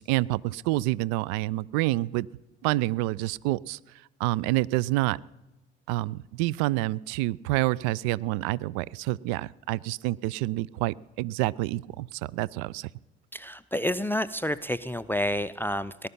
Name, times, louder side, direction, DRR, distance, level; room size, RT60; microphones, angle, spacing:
voice 1, 0.0-2.3 2.6-3.8 4.2-5.2 5.9-12.9, right 18 dB, 60° right, 24 dB, 0.5 m, -28 dB
voice 2, 13.3-16.1, left 1 dB, 5° left, 17 dB, 0.5 m, -29 dB
19.0 x 11.5 x 5.6 m, 0.97 s
figure-of-eight pair, 55°, 32 cm